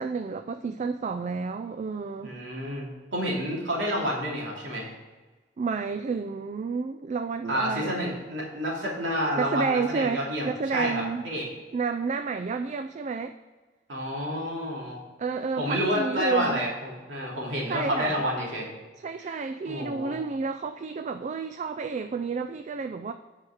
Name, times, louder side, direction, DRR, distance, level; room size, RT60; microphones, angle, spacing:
voice 1, 0.0-2.3 5.6-8.2 9.4-11.3 11.7-13.3 15.2-16.6 17.7-18.2 19.0-23.1, right 5 dB, 40° right, 9 dB, 0.3 m, -30 dB
voice 2, 2.2-4.9 7.5-11.5 13.9-15.0 15.6-18.7 19.2-19.4 19.7-20.1, equal, 80° right, -3 dB, 2.6 m, -29 dB
8.5 x 4.9 x 6.4 m, 1.3 s
head